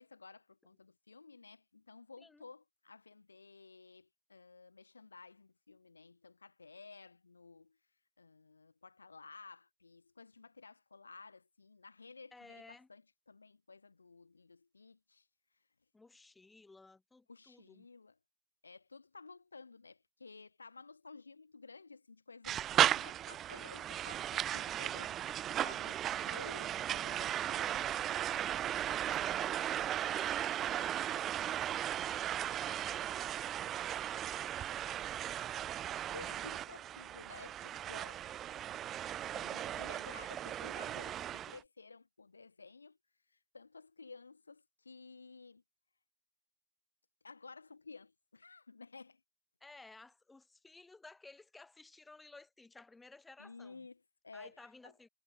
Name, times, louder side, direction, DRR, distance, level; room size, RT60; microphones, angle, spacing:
voice 1, 0.0-7.8 8.2-15.3 15.5-15.6 17.3-18.2 18.6-28.1 29.1-29.7 36.1-38.3 39.3-43.0 43.3-45.6 47.2-49.2 53.4-54.9, left 4 dB, 80° left, 1.1 m, -54 dB
voice 2, 12.3-12.9 15.9-17.9 29.2-34.8 49.6-53.9 54.3-55.1, left 3 dB, 10° left, 5.2 m, -57 dB
sound 1, 22.4-41.6, right 11 dB, 30° right, 0.4 m, -36 dB
figure-of-eight pair, 90°, 0 cm